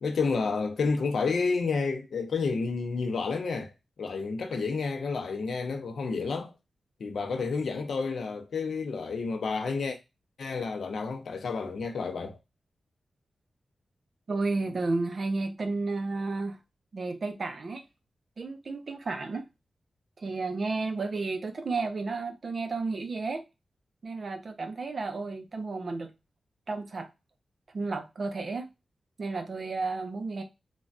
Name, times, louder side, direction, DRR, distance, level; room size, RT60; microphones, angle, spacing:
voice 1, 0.0-3.7 4.0-6.5 7.0-10.0 10.4-12.4, left 4 dB, 75° left, 0.5 m, -30 dB
voice 2, 14.3-16.6 16.9-17.8 18.4-19.4 20.2-23.4 24.0-26.1 26.7-27.1 27.7-28.7 29.2-30.4, right 3 dB, 45° right, 0.5 m, -32 dB
3.3 x 2.2 x 2.4 m
wide cardioid pair, 145°, 0 cm